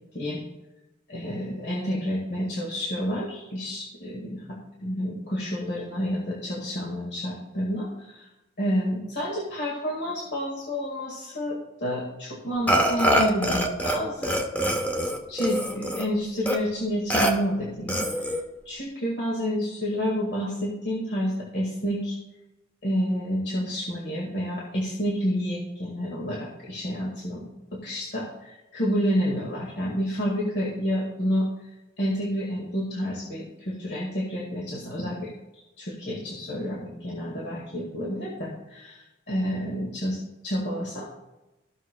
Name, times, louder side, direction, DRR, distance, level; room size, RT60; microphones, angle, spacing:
voice 1, 1.1-4.4 4.8-8.3 8.6-14.4 15.3-18.3 18.7-22.2 22.8-27.4 27.8-31.5 32.0-35.3 35.8-40.2 40.4-41.2, equal, 65° left, -4 dB, 1.7 m, -29 dB
Burping eructation, 12.7-14.0 14.2-16.1 16.5-16.6 17.1-17.3 17.9-18.4, equal, 10° left, 0.9 m, -24 dB
15.5 x 6.2 x 2.2 m, 1.0 s
head